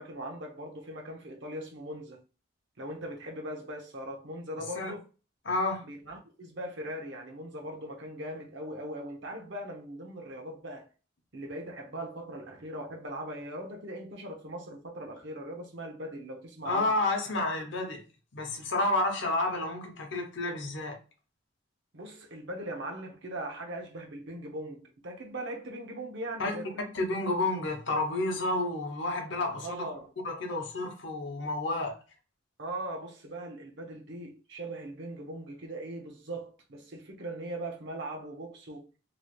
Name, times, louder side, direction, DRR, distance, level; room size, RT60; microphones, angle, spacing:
voice 1, 0.0-2.2 2.8-5.1 5.9-10.9 11.3-16.9 21.9-26.9 29.6-30.1 32.6-38.9, right 1 dB, 55° right, 0.8 m, -40 dB
voice 2, 5.4-5.9 16.6-18.0 18.3-21.0 26.4-26.6 26.9-29.9 30.2-32.0, left 2 dB, 55° left, 0.7 m, -30 dB
3.0 x 2.3 x 3.0 m
head